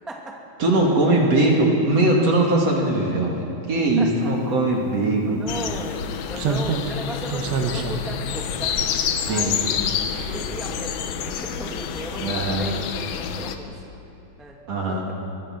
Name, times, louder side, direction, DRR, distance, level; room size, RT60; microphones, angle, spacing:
voice 1, 0.1-0.4 4.0-4.5 5.3-6.0 6.3-8.8 9.2-9.8 10.2-13.8 14.4-14.6 14.9-15.1, right 1 dB, ahead, -1 dB, 1.1 m, -37 dB
voice 2, 0.6-5.4 9.2-9.6 12.2-12.6 14.7-15.0, right 2 dB, 40° right, -1 dB, 3.0 m, -20 dB
Slam, 5.0-5.1 6.4-9.9 10.2-10.3, right 4 dB, 80° right, 3.6 m, -28 dB
sound 1, 5.5-13.6, left 8 dB, 75° left, 2.6 m, -28 dB
24.0 x 21.5 x 6.2 m, 2.8 s
omnidirectional pair, 5.0 m